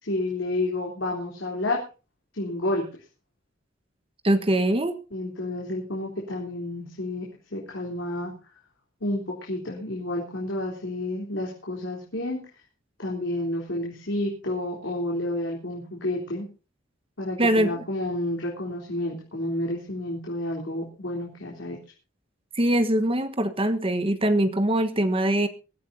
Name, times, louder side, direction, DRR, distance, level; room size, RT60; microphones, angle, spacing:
voice 1, 0.0-1.8 2.3-2.8 5.1-7.3 7.5-8.3 9.0-12.4 13.0-16.5 17.2-21.8, left 1 dB, 80° left, -2 dB, 3.7 m, -30 dB
voice 2, 4.2-4.9 17.4-17.8 22.6-25.5, right 1 dB, 30° right, 10 dB, 1.3 m, -22 dB
23.0 x 14.0 x 2.8 m, 0.33 s
head